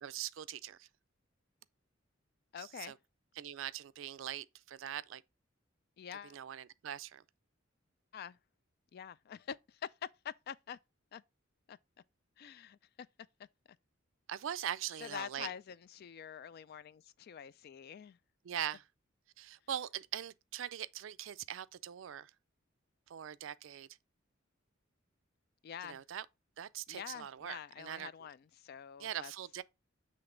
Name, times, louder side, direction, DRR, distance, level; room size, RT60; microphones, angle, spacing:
voice 1, 0.0-0.8 2.9-3.0 3.4-5.2 6.3-7.2 14.3-15.5 18.5-18.8 19.4-22.3 23.1-23.9 25.9-26.2 26.6-28.1 29.0-29.6, right 10 dB, 75° right, 0.4 m, -41 dB
voice 2, 2.5-3.0 6.0-6.4 8.1-8.4 8.9-10.8 11.1-11.2 11.7-11.8 12.4-13.1 15.0-18.2 25.6-26.0 26.9-29.3, left 8 dB, 50° left, 0.3 m, -46 dB
7.8 x 3.3 x 3.8 m
head